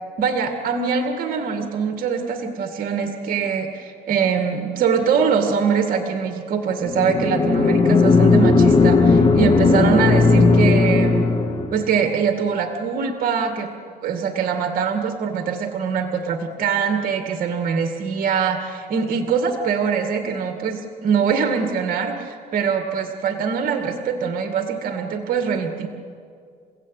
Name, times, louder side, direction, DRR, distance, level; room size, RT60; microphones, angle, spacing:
voice 1, 0.2-11.3 11.7-13.7 14.0-25.9, right 6 dB, 60° right, 5 dB, 2.2 m, -23 dB
sound 1, 6.9-11.8, left 4 dB, 30° left, 2.1 m, -16 dB
30.0 x 16.5 x 9.3 m, 2.3 s
cardioid pair, 110°, 17 cm